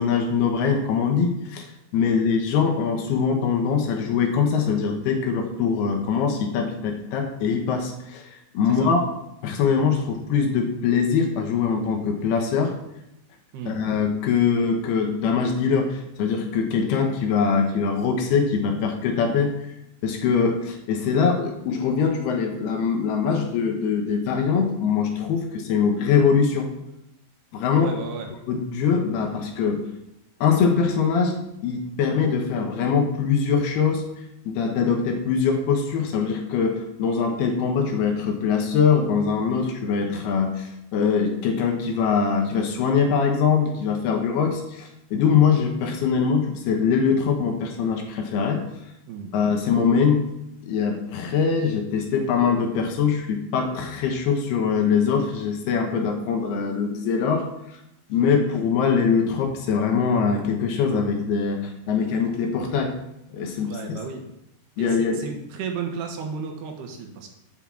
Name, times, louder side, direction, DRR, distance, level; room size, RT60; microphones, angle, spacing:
voice 1, 0.0-1.7 1.9-9.0 9.4-12.7 13.7-19.5 20.0-26.7 27.5-27.9 28.5-29.8 30.4-31.4 31.6-48.6 49.3-50.2 50.7-57.8 58.1-62.9 63.3-64.0 64.8-65.2, left 6 dB, 70° left, 2 dB, 3.0 m, -23 dB
voice 2, 27.8-28.3 49.1-49.3 58.2-58.3 63.7-64.2 64.8-67.3, right 6 dB, 75° right, 3 dB, 3.1 m, -33 dB
8.3 x 5.5 x 7.5 m, 0.85 s
omnidirectional pair, 4.9 m